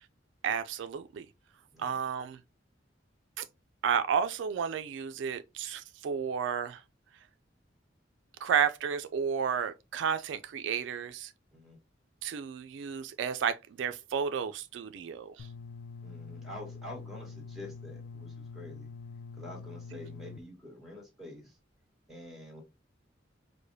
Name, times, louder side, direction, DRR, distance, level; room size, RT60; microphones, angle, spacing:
voice 1, 0.4-1.3 1.8-2.4 3.4-3.5 3.8-6.8 8.4-11.3 12.2-15.5, right 7 dB, 70° right, 0.3 m, -32 dB
sound 1, 15.4-20.4, left 4 dB, 60° left, 0.3 m, -45 dB
voice 2, 16.0-18.9 19.3-21.6 22.1-22.6, left 1 dB, ahead, 1.6 m, -47 dB
4.8 x 2.1 x 2.6 m
head